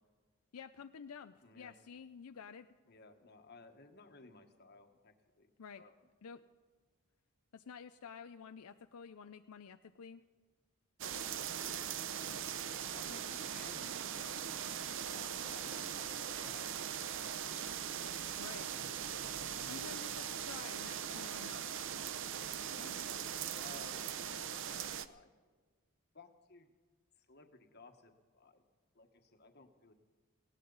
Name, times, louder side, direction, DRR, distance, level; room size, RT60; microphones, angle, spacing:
voice 1, 0.5-2.7 5.6-5.8 6.2-6.4 7.5-10.2 18.4-18.7 19.7-21.6, left 6 dB, 80° left, 9 dB, 0.5 m, -50 dB
voice 2, 1.4-1.7 2.9-5.9 12.9-17.7 19.5-19.7 22.7-24.8 25.1-25.3 26.1-26.7 27.3-28.6 28.9-29.9, left 3 dB, 45° left, 5 dB, 1.4 m, -58 dB
sound 1, 11.0-25.1, right 8 dB, 60° right, 0.6 m, -40 dB
19.0 x 17.5 x 4.0 m, 1.4 s
head